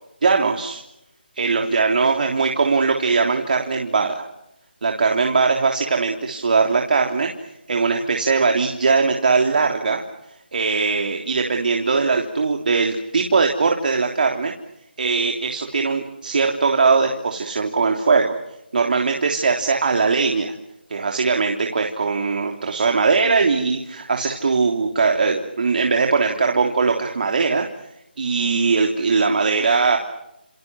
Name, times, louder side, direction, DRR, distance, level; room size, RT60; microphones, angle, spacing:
voice 1, 0.2-0.8 1.4-4.2 4.8-7.3 7.7-10.0 10.5-14.5 15.0-18.4 18.7-20.5 20.9-27.7 28.2-30.0, right 4 dB, 55° right, 2 dB, 3.4 m, -20 dB
29.5 x 29.0 x 6.3 m, 0.86 s
figure-of-eight pair, 160°, 6 cm